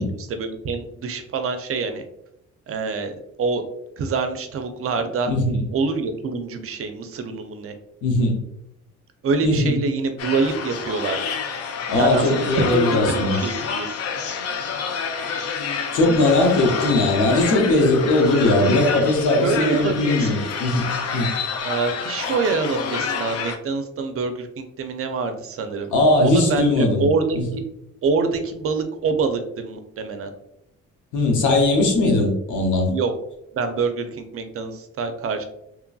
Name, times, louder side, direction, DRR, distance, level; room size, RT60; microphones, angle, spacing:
voice 1, 0.0-2.0 2.7-3.6 4.0-5.3 5.7-7.7 9.2-11.2 11.9-13.9 19.4-20.5 21.6-25.9 26.2-27.6 28.0-30.3 32.9-33.1 33.5-35.4, right 4 dB, 50° right, 7 dB, 0.5 m, -25 dB
voice 2, 5.3-5.6 8.0-8.4 9.4-9.7 11.9-13.4 15.9-20.9 21.1-21.3 25.9-27.1 27.4-27.5 31.1-32.9, left 2 dB, 90° left, 1 dB, 0.8 m, -19 dB
sound 1, 10.2-23.6, left 6 dB, 55° left, 0.5 m, -28 dB
3.0 x 2.5 x 2.2 m, 0.78 s
cardioid pair, 90°, 30 cm